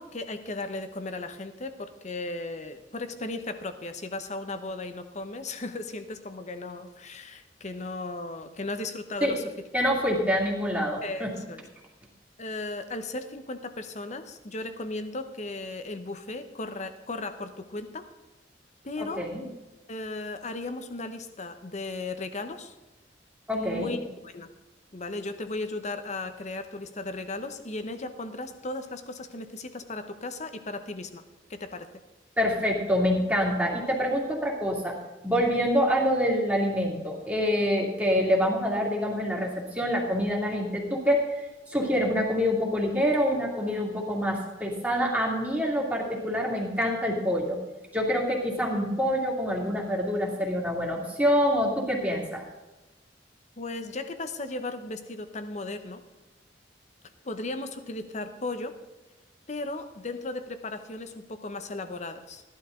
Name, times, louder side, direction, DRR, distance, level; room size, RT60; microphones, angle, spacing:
voice 1, 0.0-9.4 11.0-11.6 12.4-18.0 18.8-19.3 19.9-22.7 23.5-24.5 24.9-31.2 31.5-31.9 53.6-56.0 57.2-58.8 59.5-62.4, left 2 dB, 40° left, 9 dB, 1.0 m, -36 dB
voice 2, 9.7-11.3 19.2-19.4 23.5-23.9 32.4-35.0 35.2-41.4 41.7-47.6 47.9-52.4, equal, 10° right, -2 dB, 2.4 m, -26 dB
14.5 x 11.5 x 3.8 m, 1.1 s
head